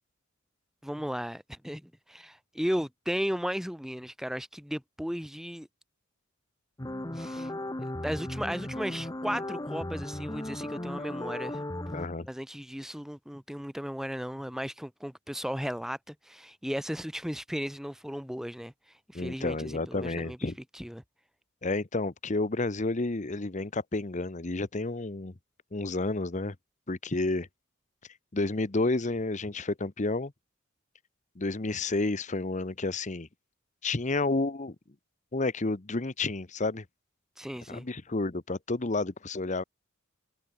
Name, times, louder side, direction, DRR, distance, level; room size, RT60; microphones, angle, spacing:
voice 1, 0.8-5.7 7.1-7.5 8.0-11.6 12.3-18.7 19.1-20.5 20.7-21.0 37.4-37.9, equal, ahead, 2.2 m, -35 dB
sound 1, 6.8-12.1, left 1 dB, 20° left, 1.3 m, -36 dB
voice 2, 11.9-12.3 19.1-20.6 21.6-25.3 25.7-26.5 26.9-27.5 28.3-30.3 31.4-33.3 33.8-34.7 35.3-36.8 37.7-39.6, left 2 dB, 35° left, 0.9 m, -30 dB
head